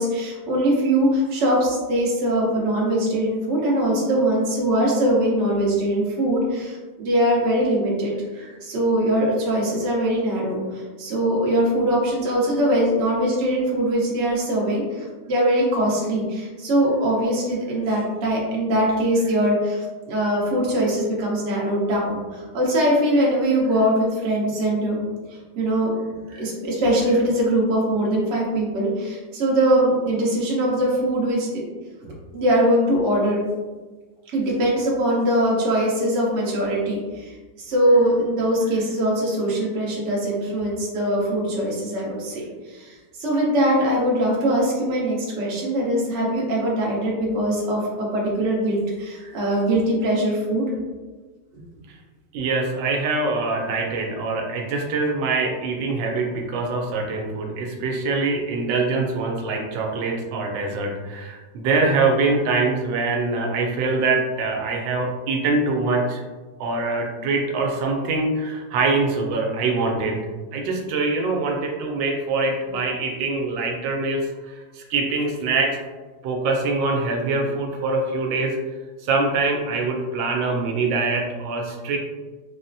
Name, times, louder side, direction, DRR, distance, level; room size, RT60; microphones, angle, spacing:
voice 1, 0.0-25.0 25.3-25.9 26.3-31.6 32.3-33.4 34.3-50.7 51.5-51.6, right 1 dB, 55° right, -4 dB, 0.9 m, -22 dB
voice 2, 52.3-66.2 66.6-70.2 70.5-75.8 76.2-78.5 79.0-82.0, right 3 dB, 90° right, 0 dB, 1.3 m, -24 dB
3.9 x 2.0 x 2.6 m, 1.3 s
omnidirectional pair, 2.0 m